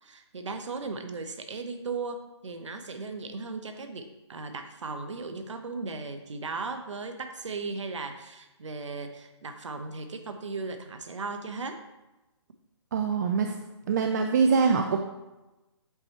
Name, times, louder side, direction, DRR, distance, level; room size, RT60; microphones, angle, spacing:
voice 1, 0.0-11.8, right 4 dB, 75° right, 7 dB, 0.7 m, -37 dB
voice 2, 12.9-13.5 13.9-15.0, right 5 dB, 35° right, 5 dB, 0.4 m, -23 dB
7.9 x 3.0 x 4.3 m, 1.0 s
hypercardioid pair, 150°, 16 cm